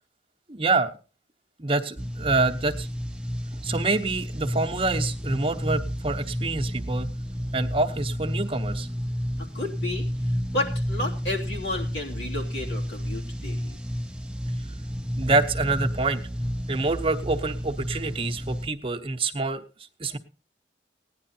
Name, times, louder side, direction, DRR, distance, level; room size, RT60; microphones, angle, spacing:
voice 1, 0.5-0.9 1.6-2.9 3.6-7.1 7.5-8.9 15.2-16.2 16.7-19.6 20.0-20.2, right 3 dB, 30° right, 4 dB, 0.9 m, -26 dB
sound 1, 2.0-18.7, equal, 5° right, 0.6 m, -31 dB
voice 2, 9.5-10.1 10.5-13.8, left 2 dB, 80° left, -1 dB, 3.3 m, -32 dB
16.5 x 10.5 x 4.3 m, 0.35 s
head